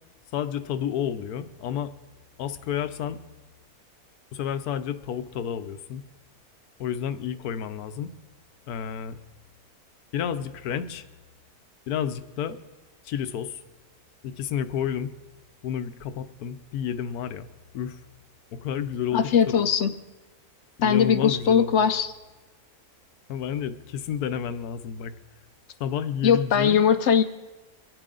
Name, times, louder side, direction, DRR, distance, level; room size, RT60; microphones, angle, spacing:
voice 1, 0.3-1.9 2.4-3.2 4.3-6.0 6.8-8.1 8.7-9.2 10.1-11.1 11.9-12.6 13.0-13.6 14.2-15.1 15.6-17.5 17.7-18.0 18.5-19.7 20.8-21.8 23.3-25.1 25.8-26.8, left 8 dB, 80° left, 12 dB, 1.2 m, -30 dB
voice 2, 19.1-19.9 20.8-22.1 26.2-27.2, left 7 dB, 60° left, 10 dB, 0.8 m, -20 dB
24.5 x 9.1 x 3.8 m, 1.1 s
omnidirectional pair, 1.6 m